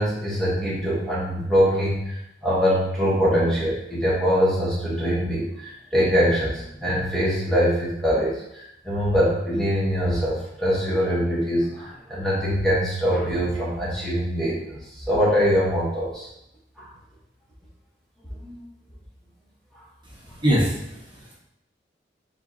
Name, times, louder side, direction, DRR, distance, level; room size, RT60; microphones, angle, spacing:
voice 1, 0.0-16.3 16.8-16.9 18.4-18.6, equal, 5° left, -8 dB, 1.0 m, -23 dB
voice 2, 20.0-21.3, equal, 25° right, -5 dB, 1.1 m, -24 dB
4.5 x 3.8 x 2.7 m, 0.80 s
head